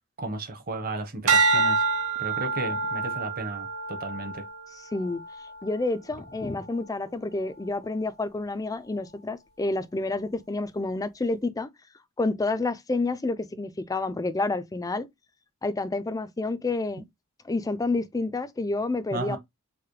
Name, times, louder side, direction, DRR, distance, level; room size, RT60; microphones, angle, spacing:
voice 1, 0.2-1.8 2.2-4.4 19.1-19.4, right 2 dB, 40° right, 0.9 m, -34 dB
sound 1, 1.3-5.7 6.3-6.7, right 4 dB, 70° right, 1.0 m, -27 dB
voice 2, 5.6-11.7 12.2-15.1 15.6-17.0 17.5-19.4, left 2 dB, 15° left, 0.4 m, -29 dB
4.7 x 2.1 x 3.1 m
head